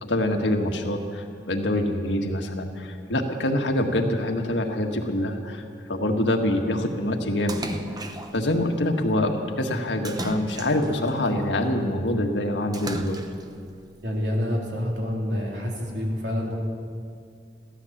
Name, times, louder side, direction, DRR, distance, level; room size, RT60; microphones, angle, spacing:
voice 1, 0.0-5.6 5.9-7.6 8.3-13.2, left 1 dB, 85° left, 3 dB, 1.6 m, -25 dB
Splash splatter, 7.5-8.5 10.0-11.1 12.7-13.6, right 1 dB, 20° right, 0.8 m, -34 dB
voice 2, 14.0-16.6, left 1 dB, 75° right, -2 dB, 3.2 m, -27 dB
15.5 x 13.0 x 7.2 m, 2.3 s
head